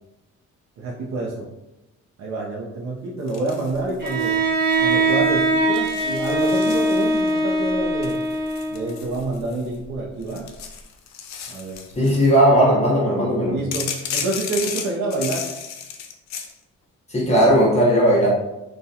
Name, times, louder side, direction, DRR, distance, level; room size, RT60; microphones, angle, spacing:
voice 1, 0.8-1.5 2.2-4.4 4.8-8.2 8.7-10.4 11.5-11.8 12.7-12.8 13.5-15.5, right 2 dB, 65° right, -3 dB, 0.6 m, -27 dB
sound 1, 3.3-4.4 4.7-5.1 5.7-7.4 8.0-9.8 10.2-12.4 13.7-16.5, left 7 dB, 65° left, 0.4 m, -33 dB
Bowed string instrument, 4.0-9.0, right 2 dB, 35° right, 0.9 m, -21 dB
voice 2, 12.0-13.5 17.1-18.3, equal, 20° left, -6 dB, 0.9 m, -17 dB
2.3 x 2.2 x 2.6 m, 0.95 s
cardioid pair, 90°, 30 cm